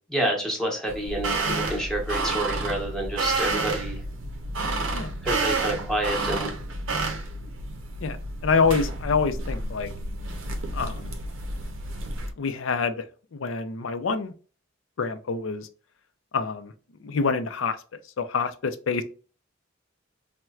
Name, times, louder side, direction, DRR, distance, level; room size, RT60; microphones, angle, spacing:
voice 1, 0.1-4.0 5.2-6.5, right 1 dB, 5° left, 0.9 m, -28 dB
sound 1, 0.9-12.3, right 2 dB, 75° right, 0.6 m, -30 dB
voice 2, 8.4-9.9 10.7-11.1 12.4-13.0 13.3-14.3 15.0-15.7 16.3-16.7 17.0-17.8 18.2-19.0, left 5 dB, 80° left, 0.5 m, -26 dB
4.3 x 2.1 x 2.3 m
head